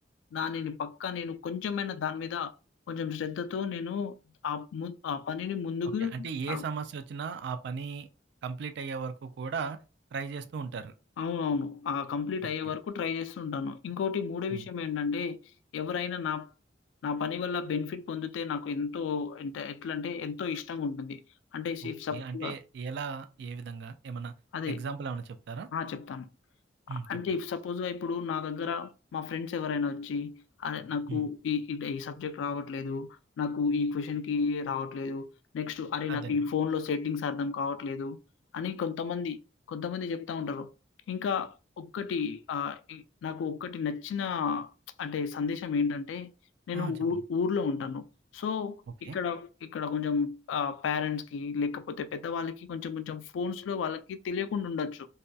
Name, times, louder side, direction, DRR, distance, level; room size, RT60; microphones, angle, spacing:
voice 1, 0.3-2.5 2.9-4.1 4.4-6.6 11.2-15.4 15.7-16.5 17.0-21.2 21.5-22.5 24.5-24.8 25.7-26.3 26.9-35.3 35.5-38.2 38.5-39.4 39.7-40.7 41.1-44.7 45.0-46.3 46.7-48.0 48.3-55.1, left 6 dB, 90° left, 0.3 m, -32 dB
voice 2, 6.0-8.1 8.4-9.8 10.1-10.9 12.6-12.7 14.5-14.6 21.8-24.3 24.7-25.7 26.9-27.2 31.1-31.3 36.1-36.4 46.7-47.2 49.0-49.2, right 5 dB, 65° right, 0.3 m, -37 dB
2.7 x 2.2 x 2.2 m
head